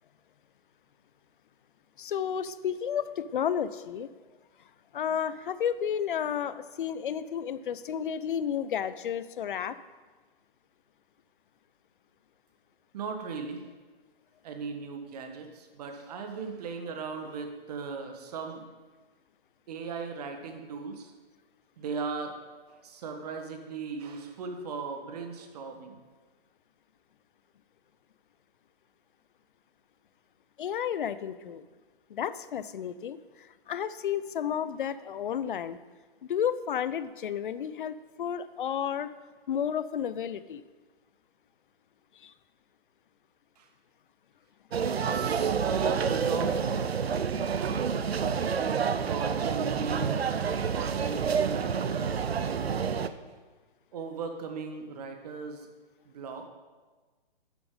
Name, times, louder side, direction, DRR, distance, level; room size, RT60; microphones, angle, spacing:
voice 1, 2.0-4.1 4.9-9.8 30.6-31.6 32.1-33.2 33.7-35.8 36.3-39.1 39.5-40.6 42.2-42.3, left 8 dB, 60° left, 15 dB, 0.5 m, -32 dB
voice 2, 12.9-13.7 14.4-18.6 19.7-21.1 21.8-22.4 22.7-26.0 43.6-43.7 44.8-47.1 47.6-48.1 49.1-52.7 53.9-55.7 56.0-56.5, right 4 dB, 40° right, 5 dB, 1.3 m, -38 dB
sound 1, 44.7-53.1, right 6 dB, 85° right, 0.6 m, -28 dB
11.5 x 6.8 x 3.7 m, 1.3 s
figure-of-eight pair, 140°, 30 cm